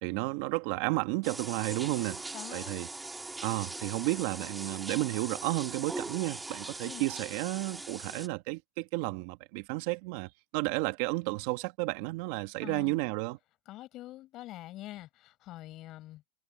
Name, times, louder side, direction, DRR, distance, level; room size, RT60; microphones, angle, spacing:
voice 1, 0.0-2.2 2.5-2.9 3.4-13.4, right 22 dB, 60° right, 1.6 m, -32 dB
sound 1, 1.2-8.3, right 2 dB, 10° right, 2.0 m, -41 dB
voice 2, 2.3-2.8 6.8-7.0 12.6-13.0 13.7-16.2, left 16 dB, 40° left, 5.7 m, -45 dB
supercardioid pair, 135°, 0 cm